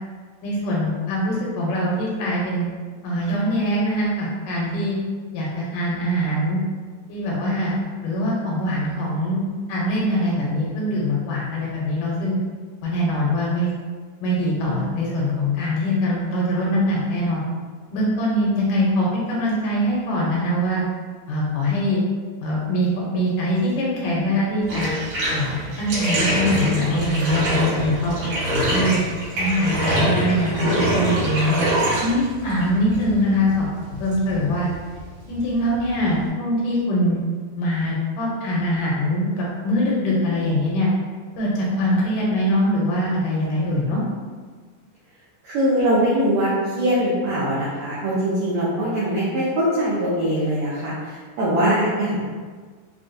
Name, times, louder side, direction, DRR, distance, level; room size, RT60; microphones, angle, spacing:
voice 1, 0.4-2.6 3.0-5.0 5.3-6.6 7.1-7.7 8.0-12.3 12.8-13.7 14.2-17.4 17.9-20.8 21.3-22.0 22.4-24.9 25.3-28.2 28.5-29.0 29.4-31.7 32.0-33.7 34.0-34.7 35.3-37.2 37.6-40.9 41.4-44.0, equal, 75° left, -4 dB, 2.1 m, -23 dB
Bathtub (filling or washing), 24.6-36.3, right 1 dB, 65° right, 2.4 m, -25 dB
voice 2, 45.4-52.5, equal, 80° right, -8 dB, 1.6 m, -22 dB
5.6 x 2.3 x 2.5 m, 1.5 s
omnidirectional pair, 4.0 m